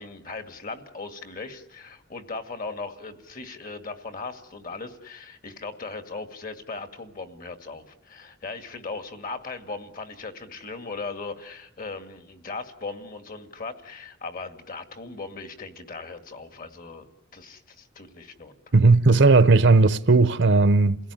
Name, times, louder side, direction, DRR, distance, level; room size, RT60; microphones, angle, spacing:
voice 1, 0.0-18.5, left 3 dB, 45° left, 2.1 m, -38 dB
voice 2, 18.7-21.1, right 3 dB, 65° right, 0.9 m, -17 dB
28.5 x 17.0 x 9.8 m
head